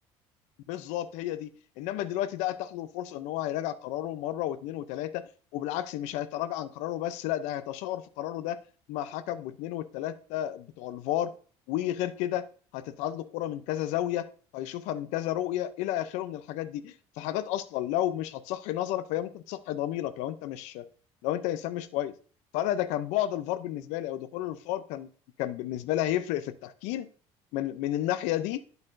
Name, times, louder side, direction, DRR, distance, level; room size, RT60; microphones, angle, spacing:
voice 1, 0.7-1.5 1.8-8.6 8.9-11.3 11.7-12.5 12.7-14.3 14.5-20.9 21.2-22.1 22.5-25.1 25.4-27.1 27.5-28.6, left 13 dB, 80° left, 13 dB, 0.5 m, -32 dB
8.9 x 7.8 x 2.6 m, 0.40 s
cardioid pair, 100°, 12 cm